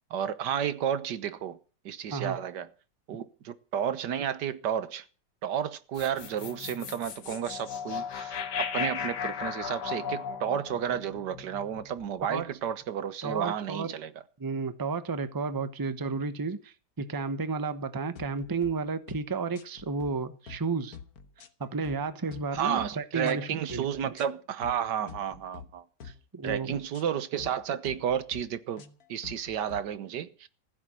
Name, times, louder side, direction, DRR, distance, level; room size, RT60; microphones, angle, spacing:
voice 1, 0.1-1.6 1.8-2.7 3.1-5.0 5.4-14.1 22.5-26.1 26.4-28.8 29.1-30.5, right 9 dB, 85° right, 1.6 m, -32 dB
sound 1, 6.0-12.3, left 7 dB, 80° left, 1.8 m, -36 dB
voice 2, 13.2-14.0 14.4-21.0 21.6-24.1 26.3-26.8, right 4 dB, 20° right, 0.7 m, -32 dB
sound 2, 18.2-18.7 19.1-19.3 19.5-20.1 20.5-20.7 20.9-22.0 22.3-22.9 23.2-23.4 23.7-24.3 24.6-24.8 25.1-25.7 26.0-26.2 26.5-27.0 27.4-27.6 27.8-28.4 28.8-29.8, left 7 dB, 65° left, 1.6 m, -46 dB
15.5 x 7.4 x 10.0 m
omnidirectional pair, 1.8 m